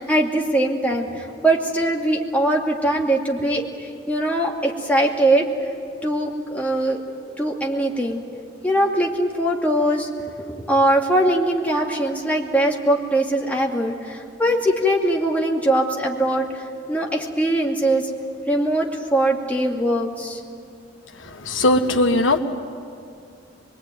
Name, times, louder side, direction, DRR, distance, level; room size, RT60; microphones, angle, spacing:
voice 1, 0.0-3.6 4.1-5.5 6.0-7.0 7.4-8.2 8.6-10.1 10.5-18.1 18.5-20.4, right 1 dB, 10° left, -1 dB, 2.4 m, -21 dB
voice 2, 21.4-22.4, left 2 dB, 85° left, 6 dB, 1.6 m, -18 dB
24.0 x 23.0 x 9.3 m, 2.4 s
head